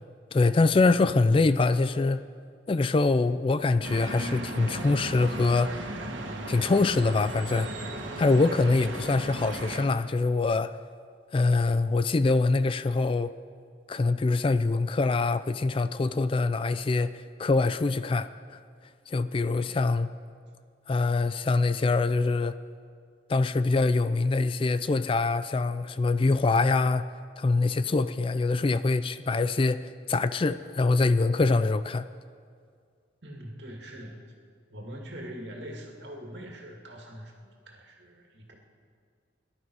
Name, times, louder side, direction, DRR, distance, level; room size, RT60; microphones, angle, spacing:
voice 1, 0.3-2.2 2.7-5.8 6.5-7.7 8.2-10.7 11.3-13.3 13.9-17.1 17.4-18.3 19.1-20.1 20.9-22.6 23.3-27.1 27.4-32.1, left 3 dB, 30° left, 13 dB, 0.3 m, -24 dB
sound 1, 3.8-9.9, right 1 dB, 85° right, 1.8 m, -36 dB
voice 2, 33.2-34.2 34.7-38.6, equal, 65° right, 1 dB, 2.3 m, -43 dB
22.0 x 12.0 x 4.7 m, 2.1 s
head